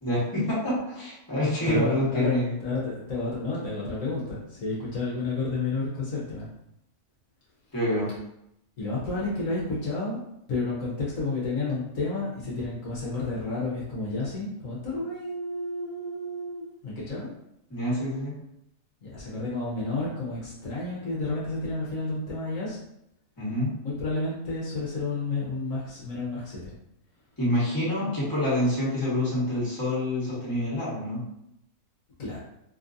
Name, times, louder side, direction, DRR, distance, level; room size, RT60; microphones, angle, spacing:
voice 1, 0.0-2.5 7.7-8.1 17.7-18.4 23.4-23.7 27.4-31.2, left 1 dB, 15° left, -8 dB, 1.3 m, -27 dB
voice 2, 1.6-6.5 8.8-10.2 10.5-17.3 19.0-22.8 23.8-26.7 32.2-32.4, left 3 dB, 65° left, -6 dB, 1.3 m, -31 dB
4.0 x 3.0 x 2.6 m, 0.80 s
omnidirectional pair, 1.6 m